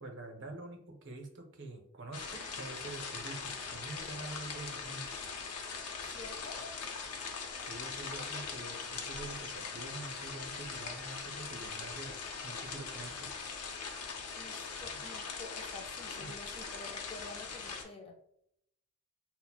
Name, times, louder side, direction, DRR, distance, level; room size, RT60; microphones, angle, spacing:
voice 1, 0.0-5.1 7.6-13.4 16.2-16.3, right 2 dB, 55° right, 4 dB, 0.6 m, -46 dB
sound 1, 2.1-17.8, left 5 dB, 90° left, 0.6 m, -41 dB
voice 2, 6.0-6.7 8.2-8.3 14.4-18.2, left 3 dB, 25° left, 1 dB, 0.4 m, -49 dB
5.6 x 2.0 x 2.3 m, 0.75 s
head